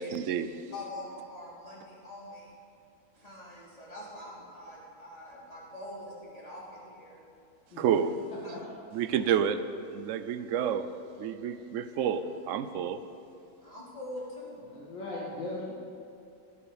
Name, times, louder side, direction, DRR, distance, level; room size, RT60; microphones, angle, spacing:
voice 1, 0.0-0.5 7.8-8.2 8.9-9.6 9.9-10.9 11.2-13.0, right 8 dB, 75° right, 10 dB, 0.7 m, -29 dB
voice 2, 0.7-2.5 3.2-7.2 13.6-14.6, left 1 dB, 20° left, -6 dB, 3.2 m, -44 dB
voice 3, 8.3-8.6 14.7-15.7, left 2 dB, 80° left, -5 dB, 2.7 m, -39 dB
17.5 x 8.7 x 5.1 m, 2.6 s
omnidirectional pair, 2.0 m